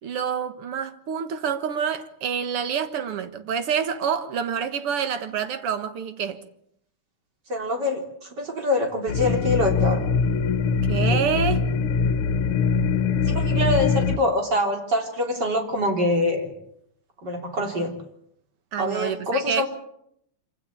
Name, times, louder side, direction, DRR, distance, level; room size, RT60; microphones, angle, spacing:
voice 1, 0.0-6.4 10.9-11.6 18.7-19.6, right 7 dB, 85° right, 2.4 m, -27 dB
voice 2, 7.5-10.0 11.1-11.2 13.3-16.5 17.2-17.9 18.8-19.7, left 1 dB, 50° right, 4.1 m, -25 dB
sound 1, 9.1-14.2, left 5 dB, 80° left, 2.0 m, -22 dB
25.5 x 16.0 x 8.7 m
omnidirectional pair, 2.4 m